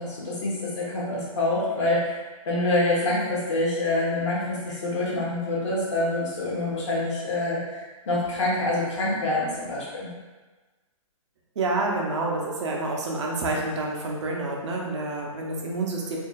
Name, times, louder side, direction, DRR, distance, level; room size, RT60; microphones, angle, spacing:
voice 1, 0.0-2.2 2.4-10.1, left 2 dB, 55° left, -6 dB, 1.4 m, -26 dB
voice 2, 11.6-16.2, right 2 dB, 55° right, -1 dB, 0.8 m, -28 dB
4.5 x 2.7 x 2.4 m, 1.3 s
hypercardioid pair, 165°, 18 cm